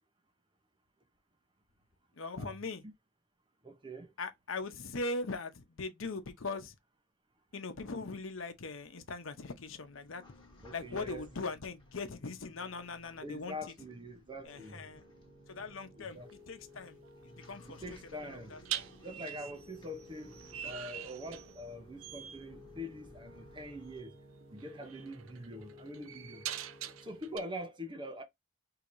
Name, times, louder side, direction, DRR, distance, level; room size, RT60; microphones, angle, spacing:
voice 1, 2.1-2.8 4.2-6.8 7.5-10.2 10.7-13.5 14.4-15.0 15.5-16.2 16.5-17.0 17.2-17.8 18.1-18.6 19.2-19.4, left 3 dB, 75° left, 0.8 m, -40 dB
voice 2, 3.6-4.1 10.6-11.3 13.2-14.8 16.0-16.3 17.8-18.5 19.0-20.4 20.6-24.2 24.5-26.4 27.0-28.2, equal, 25° right, 0.7 m, -44 dB
sound 1, 7.8-24.0, equal, 25° left, 1.4 m, -59 dB
Piano, 14.4-27.4, left 1 dB, 45° right, 1.1 m, -57 dB
sound 2, 16.1-16.3 18.7-21.7 22.0-22.4 23.9-24.1 24.6-27.4, right 11 dB, 80° right, 0.5 m, -43 dB
4.6 x 2.8 x 2.6 m
head